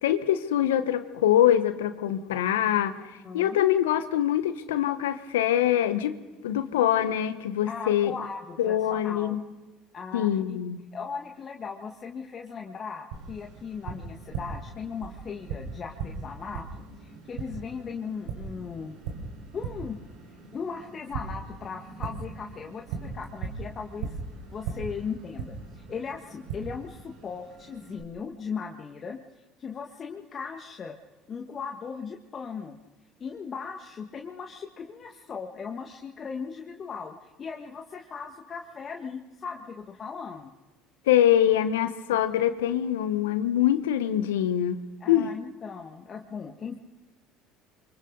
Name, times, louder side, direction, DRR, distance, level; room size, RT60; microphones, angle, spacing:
voice 1, 0.0-3.0 3.3-6.2 6.4-8.1 8.6-9.4 10.1-10.8 41.1-45.3, left 11 dB, 85° left, 11 dB, 1.2 m, -24 dB
voice 2, 3.2-3.6 7.7-9.4 9.9-10.6 10.9-16.6 17.0-19.0 19.5-20.0 20.5-24.2 24.5-29.2 29.6-31.0 31.3-32.8 33.2-40.5 45.0-46.8, left 5 dB, 40° left, 2 dB, 1.8 m, -38 dB
Tap, 13.1-28.0, right 5 dB, 75° right, 5.0 m, -39 dB
28.0 x 24.5 x 4.0 m, 1.1 s
hypercardioid pair, 70°, 0 cm